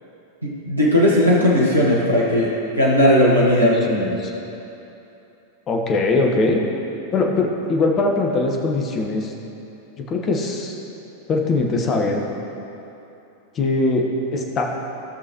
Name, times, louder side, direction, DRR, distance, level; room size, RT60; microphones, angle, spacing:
voice 1, 0.4-2.5 2.8-3.7, left 1 dB, 80° right, -5 dB, 1.4 m, -16 dB
voice 2, 3.5-4.4 5.7-6.6 7.1-9.3 10.0-10.7 11.3-12.2 13.5-14.8, left 2 dB, 30° left, 1 dB, 1.2 m, -21 dB
16.5 x 6.3 x 3.0 m, 2.9 s
figure-of-eight pair, 90°, 0 cm